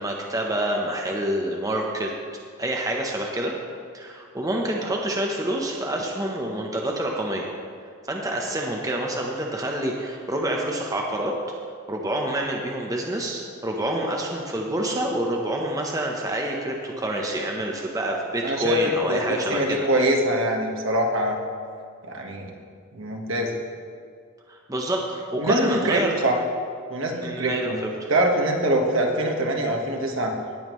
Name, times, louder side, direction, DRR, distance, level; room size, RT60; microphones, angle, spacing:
voice 1, 0.0-2.1 2.6-3.5 3.9-7.5 8.1-11.3 11.9-19.9 24.5-26.1 27.2-27.7 28.0-28.1, right 1 dB, 15° right, 0 dB, 0.8 m, -27 dB
voice 2, 18.4-21.4 22.1-22.5 22.9-23.6 25.4-26.4 26.9-27.8 28.1-30.3, right 1 dB, 65° right, 1 dB, 1.3 m, -24 dB
18.0 x 7.3 x 3.1 m, 2.2 s
head